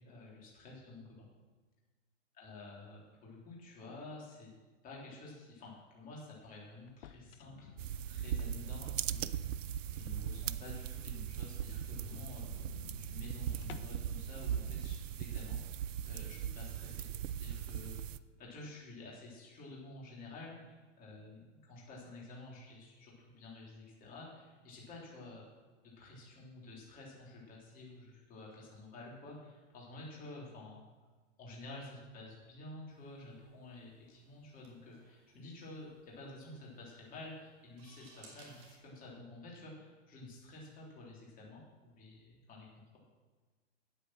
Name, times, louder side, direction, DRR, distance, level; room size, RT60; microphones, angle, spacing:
voice 1, 0.0-1.3 2.4-4.5 4.8-9.4 9.9-12.7 13.0-17.1 17.4-18.0 18.4-25.5 25.8-30.8 31.4-43.0, left 2 dB, 20° left, -4 dB, 3.4 m, -51 dB
sound 1, 6.9-9.4 9.9-10.0 10.4-10.5 10.7-10.8 11.1-11.2 11.5-14.1, left 8 dB, 50° left, 0.7 m, -53 dB
sound 2, 7.8-18.2, right 9 dB, 75° right, 0.6 m, -39 dB
sound 3, 32.9-38.8, right 3 dB, 35° right, 3.0 m, -63 dB
9.2 x 8.8 x 6.1 m, 1.3 s
hypercardioid pair, 130°, 38 cm